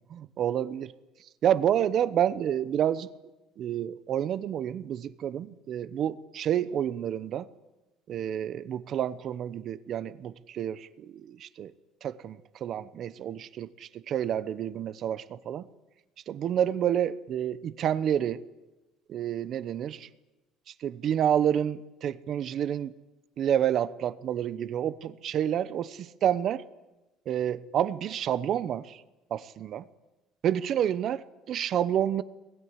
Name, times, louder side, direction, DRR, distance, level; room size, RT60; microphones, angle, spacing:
voice 1, 0.2-0.9 1.4-3.1 3.6-7.5 8.1-11.7 12.0-15.7 16.3-18.4 19.1-20.1 20.8-22.9 23.4-26.6 27.3-29.0 29.3-29.9 30.4-32.2, right 10 dB, 40° right, 0.9 m, -29 dB
23.5 x 21.5 x 9.8 m
cardioid pair, 160°, 0 cm